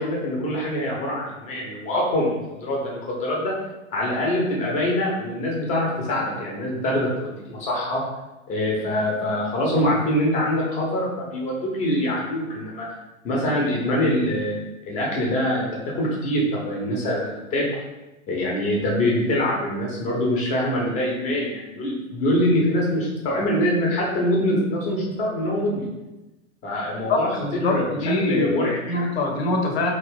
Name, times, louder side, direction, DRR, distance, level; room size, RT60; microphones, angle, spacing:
voice 1, 0.0-3.6 3.9-8.0 8.5-12.9 13.2-14.5 14.9-15.7 15.9-17.8 18.3-25.9 26.6-29.0, left 1 dB, 20° left, -3 dB, 0.7 m, -24 dB
voice 2, 27.1-29.9, left 2 dB, 50° left, 2 dB, 0.7 m, -24 dB
2.7 x 2.5 x 3.5 m, 1.0 s
figure-of-eight pair, 105°, 39 cm